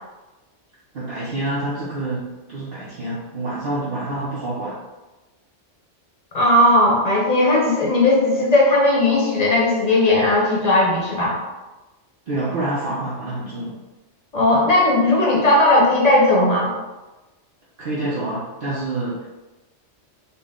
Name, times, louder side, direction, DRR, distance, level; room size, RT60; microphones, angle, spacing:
voice 1, 0.9-4.8 12.3-13.8 17.8-19.3, right 2 dB, 50° right, -8 dB, 0.9 m, -27 dB
voice 2, 6.3-11.4 14.3-16.7, left 1 dB, 35° left, -3 dB, 0.9 m, -17 dB
4.3 x 2.1 x 3.6 m, 1.1 s
omnidirectional pair, 1.2 m